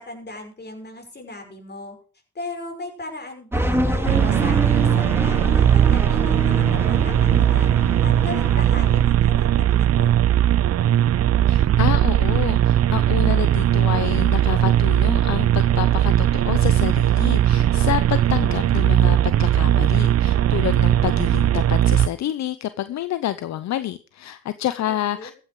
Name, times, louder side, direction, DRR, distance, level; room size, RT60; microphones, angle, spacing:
voice 1, 0.0-2.0 2.3-7.7 8.0-10.1 24.8-25.3, left 2 dB, 35° left, 4 dB, 6.1 m, -37 dB
sound 1, 3.5-9.0, right 1 dB, 10° right, 2.2 m, -26 dB
sound 2, 4.1-22.1, right 11 dB, 55° right, 0.6 m, -18 dB
voice 2, 11.5-25.3, left 12 dB, 65° left, 14 dB, 0.8 m, -28 dB
14.5 x 9.3 x 5.0 m, 0.38 s
supercardioid pair, 55°, 29 cm